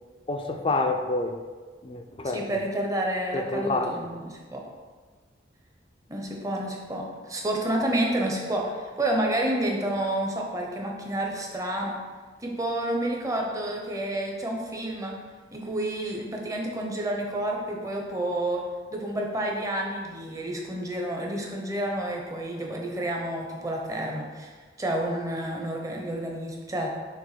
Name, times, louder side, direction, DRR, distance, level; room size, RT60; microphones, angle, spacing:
voice 1, 0.3-1.4 1.8-2.5 3.3-3.9, left 2 dB, 30° left, 5 dB, 0.4 m, -28 dB
voice 2, 2.3-4.6 6.1-12.0 12.4-15.2 15.5-18.6 18.9-26.9, right 1 dB, 20° right, 0 dB, 0.8 m, -29 dB
6.7 x 3.0 x 5.0 m, 1.5 s
head